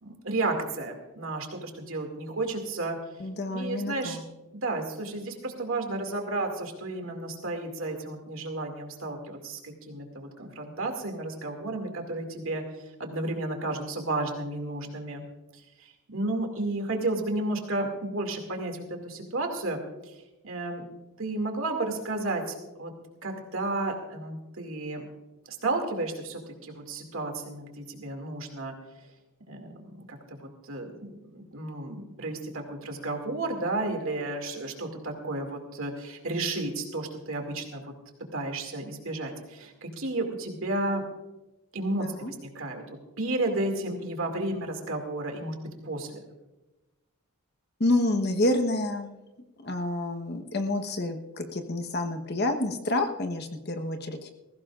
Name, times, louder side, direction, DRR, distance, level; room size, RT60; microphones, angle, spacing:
voice 1, 0.0-3.0 3.5-4.2 4.6-12.6 13.0-15.2 15.8-20.1 20.4-20.9 21.2-22.9 23.2-25.1 25.5-28.7 29.5-37.9 38.3-41.1 41.7-42.8 43.2-45.6 45.8-46.2, right 2 dB, 60° right, 3 dB, 2.4 m, -32 dB
voice 2, 3.2-4.2 42.0-42.3 47.8-49.2 49.6-54.3, left 2 dB, 45° left, 6 dB, 1.2 m, -28 dB
20.5 x 16.0 x 2.5 m, 1.1 s
head